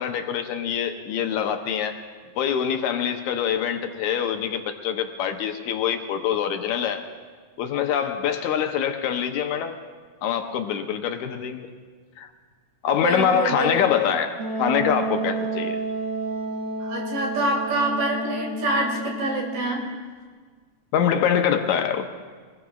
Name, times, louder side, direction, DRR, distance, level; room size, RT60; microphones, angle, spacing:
voice 1, 0.0-2.0 2.4-7.1 7.6-9.8 10.2-11.7 12.2-12.3 12.8-15.8 20.9-22.1, left 8 dB, 75° left, 6 dB, 2.0 m, -24 dB
voice 2, 13.0-13.7 16.8-19.8, right 2 dB, 85° right, -1 dB, 4.5 m, -26 dB
Wind instrument woodwind instrument, 14.4-19.9, right 2 dB, 45° right, 1.7 m, -30 dB
23.5 x 20.0 x 2.4 m, 1.6 s
omnidirectional pair, 3.7 m